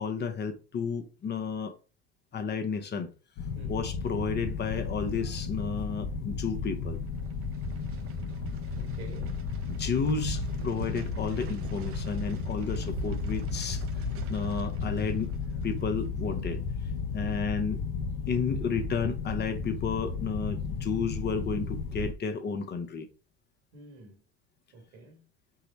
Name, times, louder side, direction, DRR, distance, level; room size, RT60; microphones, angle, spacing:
voice 1, 0.0-1.7 2.3-3.1 3.7-7.0 9.7-13.8 14.3-15.3 15.6-16.6 17.1-17.8 18.3-23.1, left 5 dB, 35° left, 0.8 m, -32 dB
sound 1, 3.4-22.1, left 5 dB, 70° left, 0.7 m, -34 dB
sound 2, 6.4-19.6 19.9-20.0, right 7 dB, 45° right, 0.6 m, -44 dB
voice 2, 8.8-9.5 17.2-17.3 23.7-24.2 24.7-25.3, right 3 dB, 80° right, 1.7 m, -49 dB
4.7 x 2.1 x 4.0 m
supercardioid pair, 100°, 32 cm